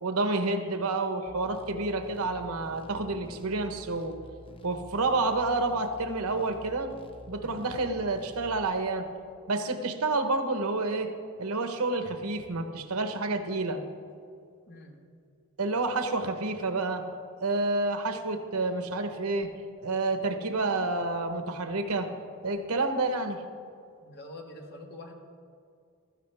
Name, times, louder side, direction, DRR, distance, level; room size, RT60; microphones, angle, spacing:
voice 1, 0.0-4.2 4.6-6.9 7.3-9.1 9.5-11.1 11.4-13.8 15.6-17.0 17.4-19.5 19.8-22.1 22.4-23.4, right 3 dB, 85° right, 7 dB, 1.1 m, -29 dB
sound 1, 1.3-8.8, equal, 25° left, 0.7 m, -49 dB
voice 2, 14.7-15.0 24.0-25.1, left 1 dB, 50° left, 2 dB, 1.6 m, -46 dB
15.5 x 13.0 x 3.5 m, 2.4 s
head